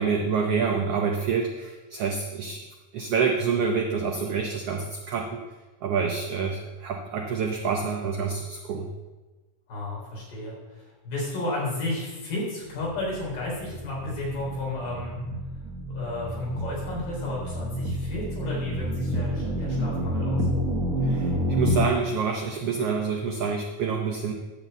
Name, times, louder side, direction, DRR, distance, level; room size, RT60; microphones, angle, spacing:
voice 1, 0.0-2.6 2.9-5.4 5.8-8.9 21.0-24.3, right 5 dB, 90° right, 2 dB, 1.3 m, -27 dB
voice 2, 9.7-15.2 15.9-20.5, left 2 dB, 80° left, -4 dB, 5.3 m, -33 dB
sound 1, 12.7-21.8, equal, 55° right, 0.9 m, -29 dB
11.0 x 4.4 x 8.0 m, 1.2 s
omnidirectional pair, 3.8 m